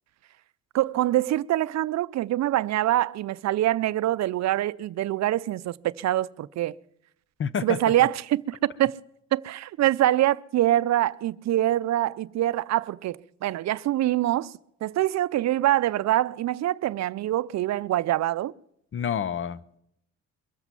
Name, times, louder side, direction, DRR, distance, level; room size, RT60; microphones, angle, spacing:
voice 1, 0.7-6.8 7.6-8.9 9.3-14.5 14.8-18.5, right 14 dB, 65° right, 0.5 m, -24 dB
voice 2, 7.4-7.8 18.9-19.8, left 7 dB, 40° left, 0.7 m, -29 dB
23.0 x 8.0 x 7.3 m
cardioid pair, 90°, 30 cm